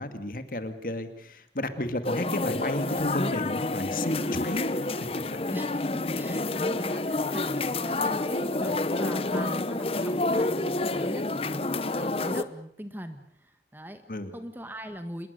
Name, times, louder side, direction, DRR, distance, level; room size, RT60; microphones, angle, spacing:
voice 1, 0.0-5.4 14.1-14.3, left 1 dB, 50° left, 9 dB, 2.2 m, -32 dB
sound 1, 2.0-12.4, left 2 dB, 35° left, 0.9 m, -29 dB
voice 2, 5.5-14.0 14.3-15.3, equal, 10° right, 8 dB, 1.6 m, -41 dB
26.5 x 21.5 x 6.8 m, 0.65 s
head